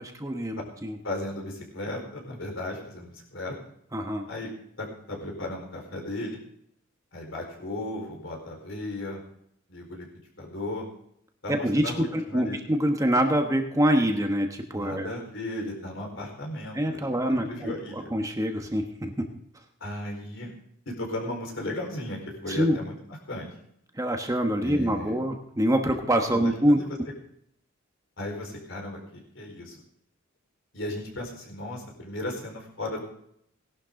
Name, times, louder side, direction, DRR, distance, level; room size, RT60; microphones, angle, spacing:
voice 1, 0.0-0.9 3.9-4.3 11.5-15.1 16.7-19.2 22.5-22.8 24.0-26.8, equal, 15° right, 4 dB, 1.2 m, -25 dB
voice 2, 1.0-3.5 4.3-4.5 4.8-6.4 7.1-9.2 9.7-10.1 10.4-10.9 11.4-12.6 14.7-17.0 17.3-18.1 19.8-20.5 20.9-22.9 23.3-23.5 24.6-25.2 26.3-26.9 28.2-29.8 30.7-33.0, left 1 dB, 65° left, 0 dB, 4.6 m, -35 dB
18.0 x 11.5 x 3.8 m, 0.72 s
head